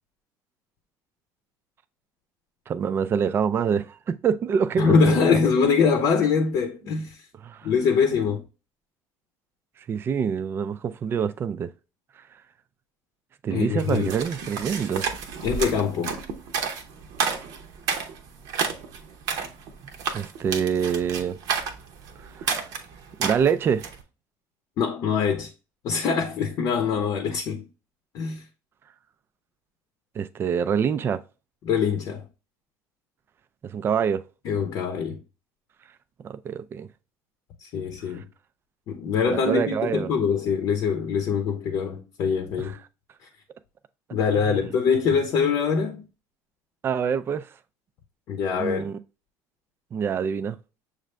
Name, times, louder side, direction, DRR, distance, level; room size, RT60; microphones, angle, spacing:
voice 1, 2.7-5.4 7.4-7.7 9.9-11.7 13.4-15.0 20.1-21.4 22.4-22.6 23.2-23.8 30.2-31.2 33.7-34.2 36.2-36.9 39.3-40.1 44.5-44.7 46.8-47.5 48.6-49.0 49.9-50.6, right 7 dB, 35° right, 0.3 m, -26 dB
voice 2, 4.8-7.2 7.6-8.4 13.5-14.1 15.4-16.2 24.8-25.5 25.8-27.7 28.1-28.4 31.6-32.2 34.4-35.2 37.6-38.2 38.9-42.8 44.1-46.0 48.3-48.9, left 5 dB, 60° left, 0.7 m, -23 dB
sound 1, 13.8-24.0, right 6 dB, 65° right, 0.8 m, -31 dB
6.4 x 2.5 x 3.2 m
cardioid pair, 115°, 7 cm